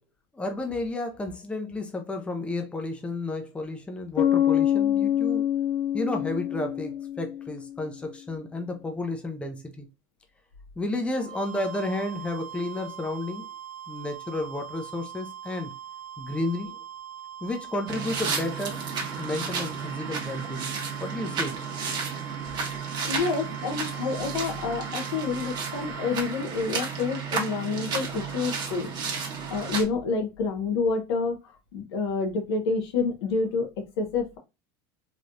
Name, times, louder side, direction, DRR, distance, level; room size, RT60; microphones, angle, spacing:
voice 1, 0.3-5.4 5.9-9.9 10.8-13.5 13.9-15.7 16.2-16.7 17.4-20.7 21.0-21.6, left 2 dB, 10° left, 0.5 m, -32 dB
Bass guitar, 4.2-7.8, left 11 dB, 70° left, 0.5 m, -25 dB
sound 1, 11.1-26.4, right 10 dB, 70° right, 0.5 m, -42 dB
sound 2, 17.9-29.8, right 5 dB, 35° right, 1.0 m, -32 dB
voice 2, 23.0-28.9 29.5-31.4 31.7-33.7 34.0-34.4, left 4 dB, 90° left, 1.0 m, -28 dB
3.3 x 2.3 x 2.6 m
supercardioid pair, 120°, 13 cm